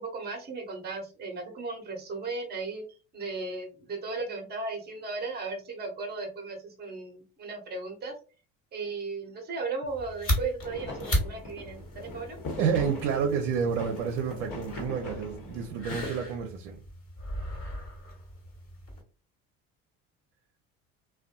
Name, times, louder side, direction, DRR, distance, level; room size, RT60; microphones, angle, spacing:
voice 1, 0.0-2.8 3.1-8.1 8.7-12.4, right 3 dB, 25° right, 0.8 m, -36 dB
sound 1, 9.9-19.0, left 1 dB, 35° left, 1.4 m, -36 dB
sound 2, 10.6-16.1, left 2 dB, 55° left, 1.1 m, -41 dB
voice 2, 12.6-16.8, right 7 dB, 80° right, 0.5 m, -29 dB
2.5 x 2.2 x 2.3 m
hypercardioid pair, 70°, 36 cm